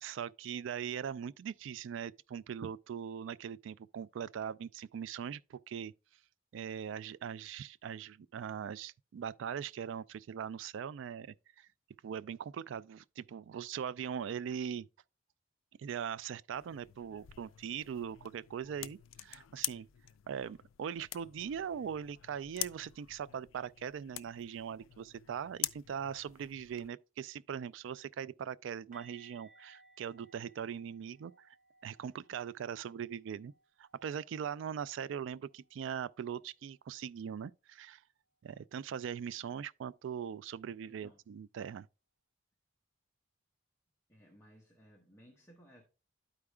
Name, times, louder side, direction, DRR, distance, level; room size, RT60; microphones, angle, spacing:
voice 1, 0.0-5.9 6.5-11.7 12.0-14.9 15.8-19.9 20.3-31.5 31.8-33.5 33.8-38.0 38.4-41.9, right 8 dB, 70° right, 0.3 m, -41 dB
sound 1, 16.5-26.9, left 15 dB, 85° left, 0.4 m, -45 dB
sound 2, 28.9-34.7 35.0-35.2 35.5-35.7 38.9-39.0, right 2 dB, 40° right, 0.9 m, -64 dB
voice 2, 40.9-41.2 44.1-45.8, equal, 15° left, 0.9 m, -60 dB
12.5 x 4.8 x 2.2 m
head